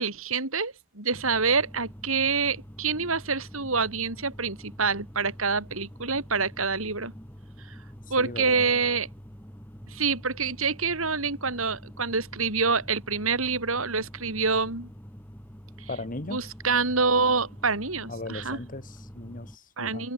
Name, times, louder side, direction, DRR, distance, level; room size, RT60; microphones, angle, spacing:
voice 1, 0.0-7.1 8.1-9.1 9.9-14.9 15.8-15.9 16.3-18.6 19.8-20.1, right 4 dB, 80° right, 4.6 m, -27 dB
sound 1, 1.1-19.6, equal, 10° left, 4.9 m, -46 dB
voice 2, 8.1-8.7 15.9-16.5 18.1-20.1, left 2 dB, 40° left, 2.2 m, -38 dB
head